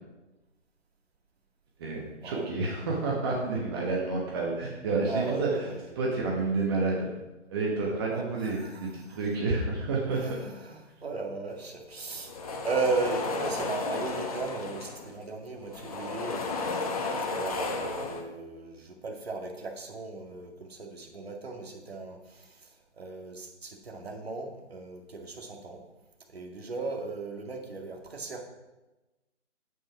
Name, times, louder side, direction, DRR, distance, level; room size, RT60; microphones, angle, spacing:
voice 1, 1.8-5.6 6.0-7.1 7.5-10.2, right 3 dB, 20° right, -2 dB, 1.2 m, -29 dB
voice 2, 5.1-6.0 8.1-9.2 10.1-16.6 17.3-25.8 26.3-28.4, right 3 dB, 55° right, 1 dB, 2.1 m, -36 dB
sound 1, 12.0-15.2 15.6-18.2, left 3 dB, 30° left, 1.0 m, -33 dB
8.8 x 8.5 x 4.9 m, 1.1 s
figure-of-eight pair, 145°, 37 cm